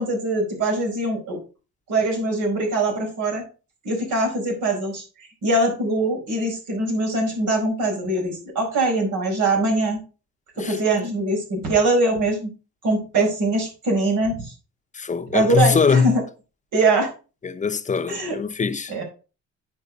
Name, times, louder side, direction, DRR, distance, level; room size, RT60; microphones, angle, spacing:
voice 1, 0.0-1.4 1.9-3.4 3.8-5.0 5.4-10.0 10.6-12.5 12.8-14.5 15.3-16.2 16.7-17.1 18.1-18.4 18.9-19.0, right 2 dB, 80° right, 4.9 m, -22 dB
voice 2, 14.9-16.2 17.4-19.0, left 5 dB, 25° left, 0.8 m, -22 dB
9.7 x 4.8 x 5.2 m
cardioid pair, 90°, 30 cm